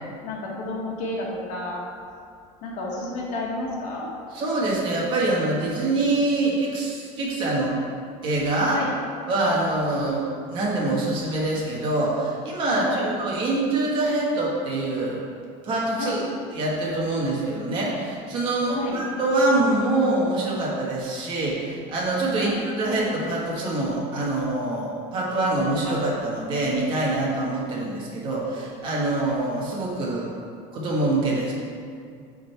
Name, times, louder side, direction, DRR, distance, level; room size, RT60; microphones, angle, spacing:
voice 1, 0.2-1.8 2.6-4.1 8.7-8.9 12.7-13.1 16.0-16.2 18.7-19.0 22.3-22.6, left 2 dB, 50° left, -3 dB, 1.6 m, -31 dB
voice 2, 4.3-7.8 8.2-8.8 9.3-10.2 10.5-15.2 15.6-16.2 16.5-30.3 30.7-31.5, right 2 dB, 35° right, -4 dB, 1.4 m, -25 dB
8.5 x 4.0 x 4.5 m, 2.3 s
cardioid pair, 175°, 15 cm